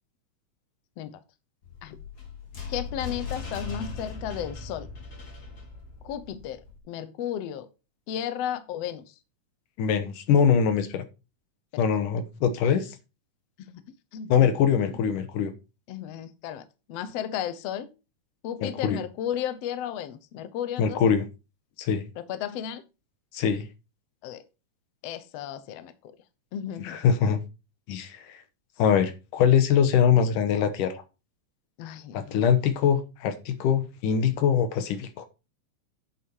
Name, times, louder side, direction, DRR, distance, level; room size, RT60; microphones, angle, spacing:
sound 1, 1.6-6.8, left 5 dB, 30° left, 2.6 m, -39 dB
voice 1, 2.7-4.9 6.0-7.7 8.1-9.0 11.7-11.8 13.6-13.8 14.1-14.5 15.9-17.9 18.4-21.1 22.2-22.8 24.2-24.4 25.0-26.2 26.5-27.0 31.8-32.4, left 10 dB, 65° left, 1.7 m, -34 dB
voice 2, 9.8-11.1 11.8-12.9 14.3-15.5 18.6-19.0 20.8-21.3 21.8-22.0 23.3-23.6 26.8-27.4 27.9-28.4 28.8-31.0 32.1-35.3, left 7 dB, 85° left, 2.8 m, -23 dB
9.4 x 7.2 x 4.6 m
omnidirectional pair, 3.6 m